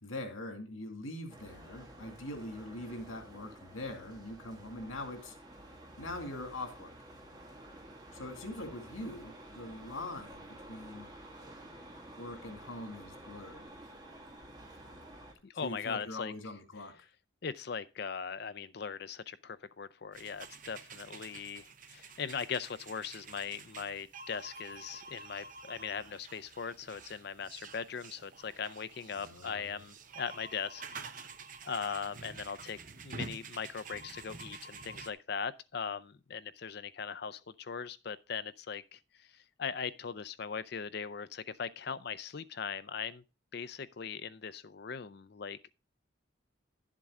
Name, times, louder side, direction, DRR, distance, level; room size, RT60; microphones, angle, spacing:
voice 1, 0.0-5.3 6.0-6.9 8.1-11.1 12.2-13.7 15.6-17.0 29.1-29.8, left 1 dB, 90° left, 2.2 m, -43 dB
sound 1, 1.3-15.3, right 1 dB, 20° right, 1.9 m, -51 dB
voice 2, 15.4-16.3 17.4-31.0 31.6-32.8 33.0-43.2 43.5-45.7, left 6 dB, 50° left, 0.5 m, -40 dB
sound 2, 20.1-35.1, right 4 dB, 40° right, 0.8 m, -49 dB
11.5 x 7.5 x 3.6 m
head